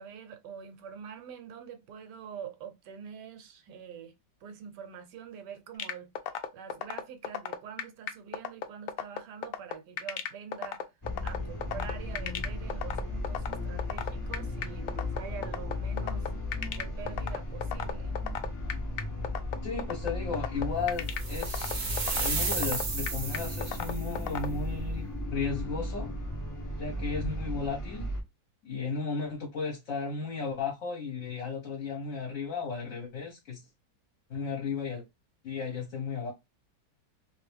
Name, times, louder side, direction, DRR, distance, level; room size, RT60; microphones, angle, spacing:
voice 1, 0.0-4.1 4.4-6.1 6.5-10.8 11.2-16.3 16.7-18.1, right 7 dB, 75° right, 1.3 m, -45 dB
sound 1, 5.8-24.5, left 9 dB, 75° left, 0.8 m, -34 dB
sound 2, 11.0-28.2, left 1 dB, 30° left, 0.3 m, -35 dB
voice 2, 19.6-26.1 26.8-28.1 28.6-33.7 34.3-35.0 35.4-36.3, left 5 dB, 55° left, 1.1 m, -35 dB
sound 3, 21.1-24.1, right 4 dB, 45° right, 0.6 m, -33 dB
2.9 x 2.6 x 3.3 m
omnidirectional pair, 1.9 m